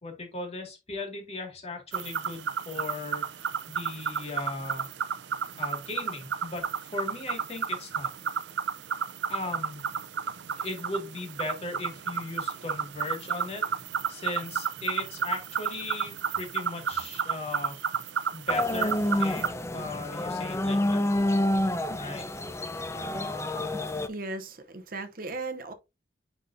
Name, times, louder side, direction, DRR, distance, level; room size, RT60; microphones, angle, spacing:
voice 1, 0.0-3.4 3.7-4.9 5.6-8.1 9.3-9.9 10.6-13.7 14.1-17.7 18.3-21.0 22.0-22.3, left 2 dB, 35° left, 2.2 m, -37 dB
sound 1, 1.9-19.5, right 7 dB, 80° right, 0.5 m, -32 dB
sound 2, 18.5-24.1, left 1 dB, 15° left, 0.5 m, -28 dB
voice 2, 23.9-25.7, right 3 dB, 55° right, 0.8 m, -37 dB
9.9 x 3.9 x 2.6 m
head